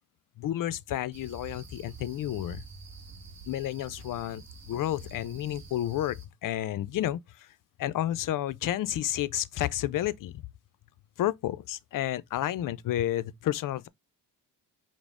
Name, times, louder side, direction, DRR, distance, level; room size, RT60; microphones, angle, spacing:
voice 1, 0.4-2.6 3.5-7.5 7.8-10.5 11.2-13.9, left 13 dB, 45° left, 0.4 m, -31 dB
sound 1, 1.1-6.3, right 5 dB, 35° right, 1.0 m, -47 dB
4.8 x 2.1 x 3.5 m
supercardioid pair, 55°, 46 cm